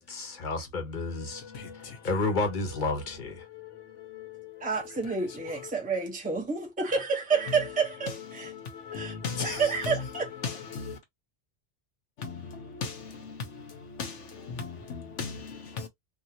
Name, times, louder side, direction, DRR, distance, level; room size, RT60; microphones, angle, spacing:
voice 1, 0.0-1.4 2.0-3.4, left 3 dB, 45° left, 1.0 m, -30 dB
voice 2, 1.0-2.2 3.2-5.7 7.4-11.0 12.2-15.9, left 5 dB, 85° left, 1.2 m, -39 dB
voice 3, 4.6-8.5 8.9-10.3, right 5 dB, 10° right, 0.9 m, -29 dB
3.8 x 2.4 x 2.8 m
omnidirectional pair, 1.2 m